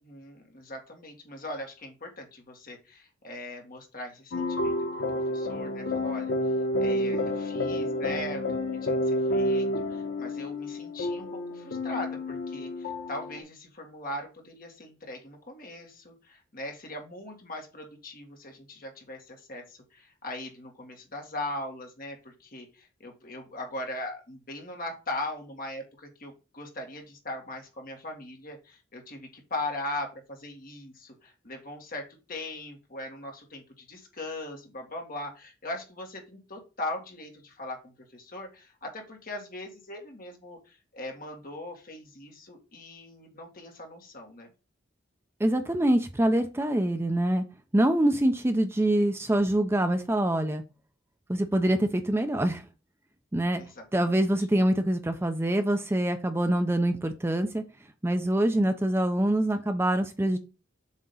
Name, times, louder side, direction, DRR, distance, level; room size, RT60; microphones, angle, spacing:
voice 1, 0.0-4.7 5.3-6.3 6.8-44.5 53.6-54.3, left 1 dB, 50° left, 2 dB, 1.8 m, -40 dB
sound 1, 4.3-13.4, left 1 dB, 85° left, 1.1 m, -29 dB
voice 2, 45.4-47.4 47.7-50.6 51.3-52.6 53.3-53.6 53.9-57.6 58.0-60.4, right 1 dB, 15° right, 7 dB, 0.5 m, -25 dB
7.3 x 2.9 x 5.4 m, 0.31 s
head